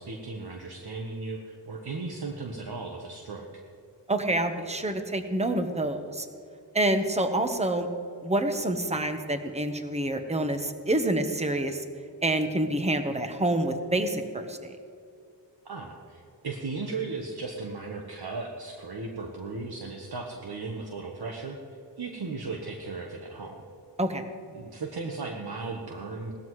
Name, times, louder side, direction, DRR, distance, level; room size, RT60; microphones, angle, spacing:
voice 1, 0.0-3.5 15.6-21.6 22.0-23.6 24.5-26.3, right 3 dB, 60° right, 1 dB, 1.2 m, -36 dB
voice 2, 4.1-6.3 6.7-7.9 8.2-11.8 12.2-14.8 24.0-24.3, right 1 dB, 15° right, 7 dB, 1.0 m, -27 dB
18.0 x 13.5 x 3.1 m, 2.4 s
wide cardioid pair, 75°, 43 cm